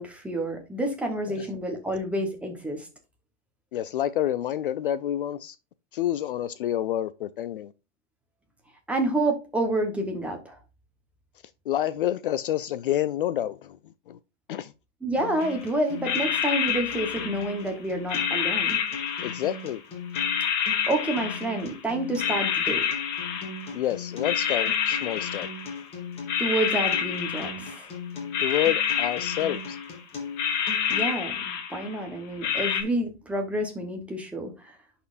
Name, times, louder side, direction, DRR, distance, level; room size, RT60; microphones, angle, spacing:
voice 1, 0.0-2.9 8.9-10.6 15.0-18.8 20.9-22.8 26.4-27.9 30.9-34.7, right 1 dB, 5° right, 1.0 m, -29 dB
voice 2, 3.7-5.6 5.9-7.7 11.7-13.8 14.1-14.2 14.5-14.7 19.2-19.8 23.7-25.5 28.4-29.8, left 12 dB, 50° left, 0.4 m, -28 dB
Acoustic guitar, 15.2-31.2, left 4 dB, 15° left, 2.0 m, -39 dB
sound 1, 15.4-15.6 16.0-17.7 18.1-19.8 20.1-21.8 22.2-23.8 24.1-25.9 26.3-27.9 28.3-30.0 30.3-32.1 32.4-32.8, left 8 dB, 35° left, 1.5 m, -28 dB
10.5 x 4.3 x 2.5 m
hypercardioid pair, 145°, 34 cm